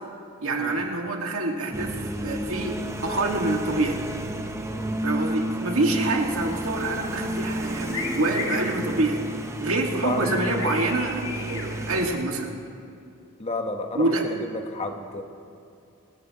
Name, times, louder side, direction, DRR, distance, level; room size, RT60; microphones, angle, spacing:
voice 1, 0.4-4.0 5.0-9.2 9.6-12.5 13.9-14.3, right 2 dB, 90° right, 1 dB, 1.9 m, -26 dB
sound 1, 1.7-12.2, right 1 dB, 15° right, 0.9 m, -32 dB
sound 2, 7.9-8.7 10.2-11.7, left 4 dB, 80° left, 2.3 m, -33 dB
voice 2, 10.0-10.8 13.4-15.2, left 2 dB, 30° left, 5 dB, 1.1 m, -31 dB
25.5 x 13.5 x 2.9 m, 2.6 s
head